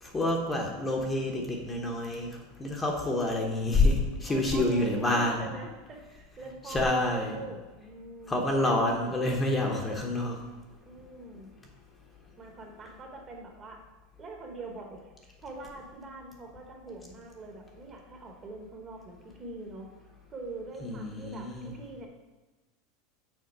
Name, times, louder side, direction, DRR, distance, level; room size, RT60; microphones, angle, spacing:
voice 1, 0.0-5.5 6.6-7.4 8.3-10.4 20.8-21.7, left 2 dB, 15° left, 0 dB, 0.9 m, -28 dB
voice 2, 4.3-9.2 10.9-11.5 12.4-13.8 14.2-15.0 15.4-19.9 20.3-22.1, right 3 dB, 25° right, 2 dB, 1.1 m, -43 dB
6.5 x 4.0 x 5.9 m, 1.2 s
supercardioid pair, 155°, 0 cm